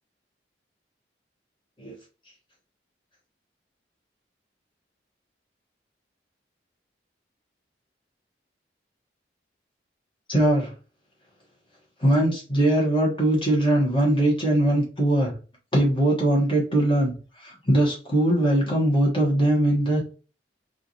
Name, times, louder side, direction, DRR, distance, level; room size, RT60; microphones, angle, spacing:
voice 1, 10.3-10.7 12.0-15.3 15.7-17.1 17.4-20.0, right 1 dB, 25° left, -3 dB, 1.3 m, -21 dB
3.5 x 2.5 x 2.8 m, 0.35 s
head